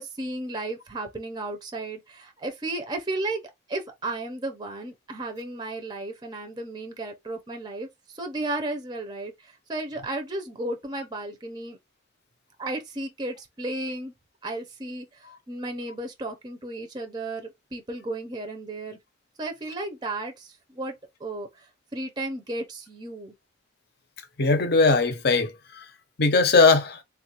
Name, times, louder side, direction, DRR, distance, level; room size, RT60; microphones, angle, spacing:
voice 1, 0.0-11.8 12.6-14.1 14.4-19.0 19.4-20.9 21.2-23.3, right 2 dB, 20° right, 0.5 m, -34 dB
voice 2, 24.4-25.8 26.2-27.0, left 3 dB, 55° left, 0.7 m, -20 dB
3.6 x 2.4 x 2.8 m
head